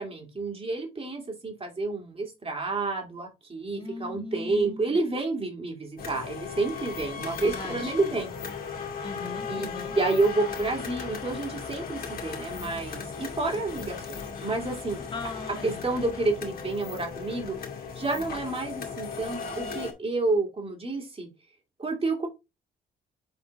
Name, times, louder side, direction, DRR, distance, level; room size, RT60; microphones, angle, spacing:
voice 1, 0.0-8.3 9.5-9.7 10.0-15.0 15.6-17.6 17.9-21.3 21.8-22.3, right 3 dB, 30° right, 2 dB, 2.7 m, -29 dB
voice 2, 3.7-5.0 7.4-8.2 9.0-9.9 15.1-15.9, left 2 dB, 25° left, -1 dB, 2.7 m, -39 dB
sound 1, 6.0-19.9, left 6 dB, 50° left, 2.3 m, -37 dB
7.1 x 4.3 x 3.4 m, 0.24 s
cardioid pair, 90°, 20 cm